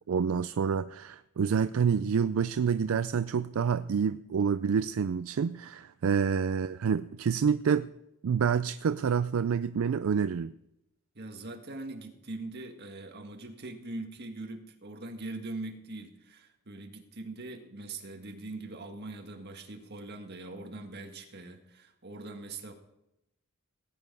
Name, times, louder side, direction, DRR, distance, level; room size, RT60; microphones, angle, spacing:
voice 1, 0.1-7.9 8.2-10.5, right 6 dB, 70° right, 0.4 m, -28 dB
voice 2, 11.2-22.7, right 2 dB, 50° right, 1.8 m, -42 dB
17.5 x 9.7 x 5.4 m
head